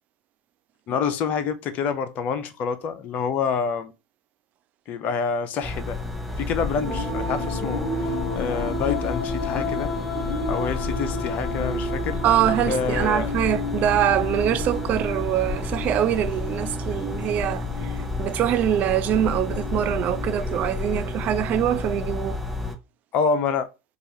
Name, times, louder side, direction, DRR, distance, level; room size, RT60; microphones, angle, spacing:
voice 1, 0.9-3.9 4.9-6.0 6.4-9.9 10.5-12.2 12.6-13.3 23.1-23.7, left 6 dB, 45° left, 0.6 m, -27 dB
sound 1, 5.6-22.7, left 3 dB, ahead, 0.8 m, -31 dB
sound 2, 6.8-20.3, left 1 dB, 25° left, 1.3 m, -32 dB
voice 2, 12.2-17.9 18.2-22.4, right 11 dB, 40° right, 0.4 m, -24 dB
4.7 x 2.4 x 2.8 m
figure-of-eight pair, 75°, 4 cm